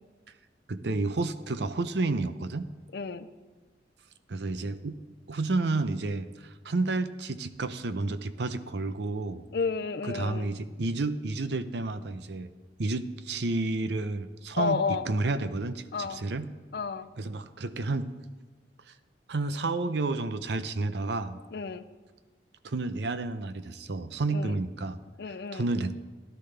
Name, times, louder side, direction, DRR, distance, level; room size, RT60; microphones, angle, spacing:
voice 1, 0.7-2.7 4.3-5.0 5.3-9.4 10.0-12.5 12.8-16.5 17.2-18.1 19.3-21.4 22.6-25.0 25.5-25.9, right 3 dB, 65° right, 12 dB, 0.6 m, -30 dB
voice 2, 2.9-3.3 9.5-10.5 14.6-15.1 15.9-16.2 16.7-17.1 21.5-21.8 24.3-24.5 25.2-25.7, left 5 dB, 60° left, 13 dB, 0.5 m, -31 dB
16.0 x 11.5 x 3.3 m, 1.4 s
head